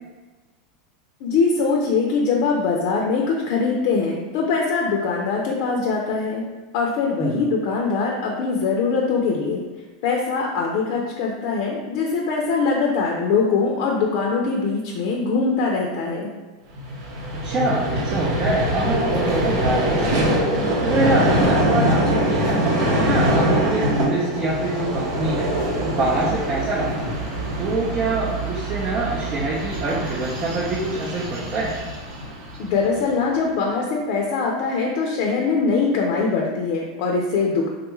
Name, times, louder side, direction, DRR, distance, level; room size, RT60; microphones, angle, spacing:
voice 1, 1.2-6.4 6.7-9.6 10.0-16.3 32.6-37.7, left 4 dB, 60° left, -1 dB, 0.5 m, -22 dB
Vehicle, 16.7-33.1, right 1 dB, 65° right, 0.9 m, -23 dB
voice 2, 17.4-20.5 20.8-22.6 22.9-25.5 25.8-27.1 27.6-31.7, right 2 dB, 30° right, -5 dB, 0.5 m, -25 dB
3.5 x 2.3 x 3.0 m, 1.3 s
supercardioid pair, 135°, 3 cm